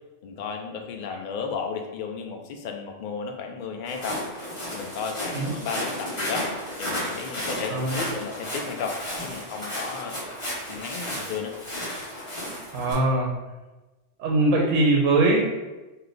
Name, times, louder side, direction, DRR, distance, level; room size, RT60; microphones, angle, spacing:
voice 1, 0.2-4.2 4.7-6.5 6.8-10.2 10.7-11.5, left 5 dB, 65° left, 4 dB, 0.5 m, -34 dB
Walk footsteps, 3.9-12.9, left 1 dB, 25° left, 1.2 m, -33 dB
voice 2, 12.7-13.4 14.2-15.4, right 2 dB, 80° right, 0 dB, 1.0 m, -21 dB
3.9 x 2.7 x 3.2 m, 1.1 s
omnidirectional pair, 1.3 m